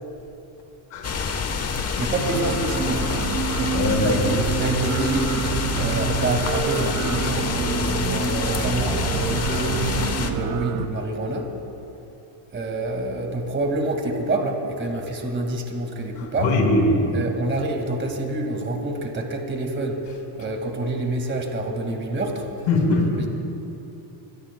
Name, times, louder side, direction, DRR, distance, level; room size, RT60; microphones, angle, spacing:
voice 1, 0.9-1.3 3.7-4.2 16.2-17.0 22.7-23.2, left 2 dB, 70° left, 0 dB, 4.5 m, -21 dB
sound 1, 1.0-10.3, left 5 dB, 30° left, 1.1 m, -27 dB
voice 2, 2.0-3.2 3.6-5.4 5.7-11.5 12.5-16.6 17.1-20.0 20.3-22.5, right 2 dB, 25° right, 2 dB, 2.0 m, -27 dB
sound 2, 2.3-10.8, right 8 dB, 70° right, 1.1 m, -28 dB
26.0 x 22.5 x 2.3 m, 2.8 s
cardioid pair, 135°, 50 cm